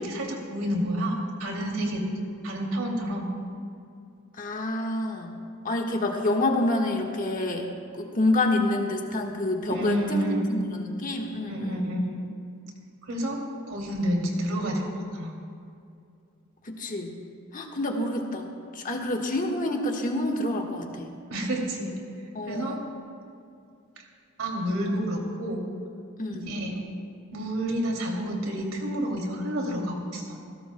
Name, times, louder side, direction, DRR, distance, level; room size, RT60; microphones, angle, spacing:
voice 1, 0.0-2.0 2.4-3.3 9.7-10.5 11.5-12.2 13.0-13.4 13.7-15.3 21.3-21.9 22.5-22.8 24.4-25.7 26.5-26.8 27.3-30.4, equal, 85° right, 0 dB, 2.6 m, -29 dB
voice 2, 4.4-5.4 5.6-11.8 16.6-17.1 17.5-21.1 22.3-22.8 26.2-26.6, left 1 dB, 40° left, 1 dB, 1.4 m, -28 dB
21.5 x 16.5 x 2.2 m, 2.5 s
head